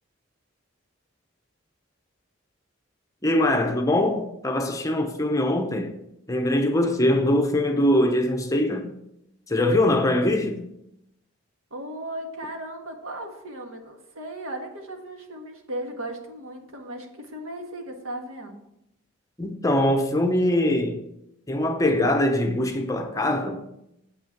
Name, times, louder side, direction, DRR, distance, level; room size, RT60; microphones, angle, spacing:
voice 1, 3.2-5.9 6.3-8.9 9.5-10.6 19.4-21.0 21.5-23.6, left 1 dB, 15° left, 0.7 m, -22 dB
voice 2, 11.7-18.6, right 1 dB, 80° right, 1.6 m, -36 dB
8.0 x 6.1 x 5.9 m
head